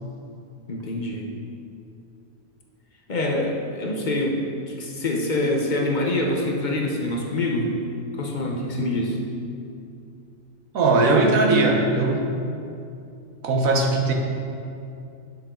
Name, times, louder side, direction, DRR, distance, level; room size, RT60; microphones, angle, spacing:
voice 1, 0.7-1.3 3.1-7.8 8.1-9.2, left 1 dB, 40° left, 0 dB, 0.9 m, -25 dB
voice 2, 10.7-12.3 13.4-14.1, right 2 dB, 80° right, 1 dB, 1.4 m, -19 dB
9.1 x 6.9 x 3.8 m, 2.6 s
omnidirectional pair, 1.4 m